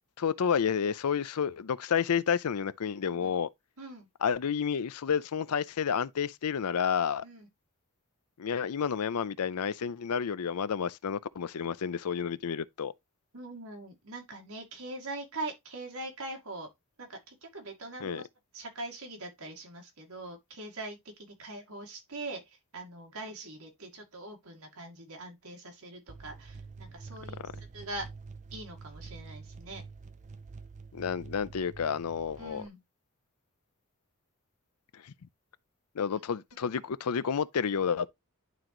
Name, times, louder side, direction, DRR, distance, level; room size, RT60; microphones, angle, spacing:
voice 1, 0.2-3.5 4.2-7.2 8.4-12.9 18.0-18.2 30.9-32.6 34.9-35.1 35.9-38.1, left 7 dB, 85° left, 0.5 m, -30 dB
voice 2, 3.8-4.1 7.2-7.5 13.3-16.7 17.0-18.3 18.5-28.1 28.5-29.8 32.4-32.8, right 2 dB, 70° right, 2.3 m, -42 dB
sound 1, 26.1-32.7, right 4 dB, 35° right, 0.5 m, -47 dB
11.0 x 3.9 x 3.0 m
head